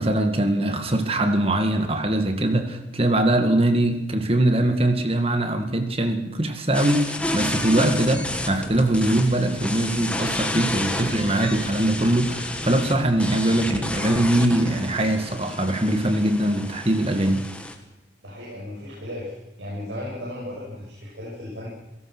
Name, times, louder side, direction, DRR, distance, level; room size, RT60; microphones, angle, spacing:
voice 1, 0.0-17.4, right 1 dB, 30° right, 6 dB, 2.1 m, -22 dB
sound 1, 6.7-17.7, left 1 dB, 5° left, 2.0 m, -31 dB
sound 2, 7.2-17.2, left 1 dB, 35° left, 2.4 m, -39 dB
voice 2, 18.2-21.7, left 1 dB, 75° right, -5 dB, 7.6 m, -35 dB
28.5 x 18.0 x 6.3 m, 0.93 s
head